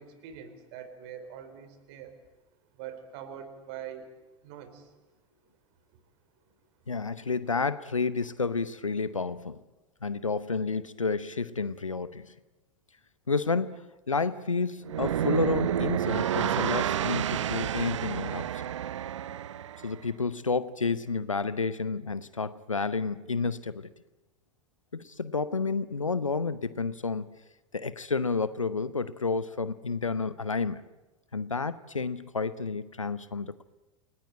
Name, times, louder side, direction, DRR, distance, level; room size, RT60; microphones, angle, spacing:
voice 1, 0.0-2.2 2.7-4.1 4.4-4.9, right 8 dB, 55° right, 11 dB, 3.9 m, -43 dB
voice 2, 6.9-9.6 10.0-12.3 13.3-18.5 19.8-23.9 24.9-27.4 27.7-30.8 31.3-33.6, left 4 dB, 85° left, 15 dB, 0.8 m, -30 dB
sound 1, 14.8-19.9, right 10 dB, 70° right, 0.8 m, -30 dB
29.5 x 19.0 x 8.8 m, 1.1 s
figure-of-eight pair, 80°, 16 cm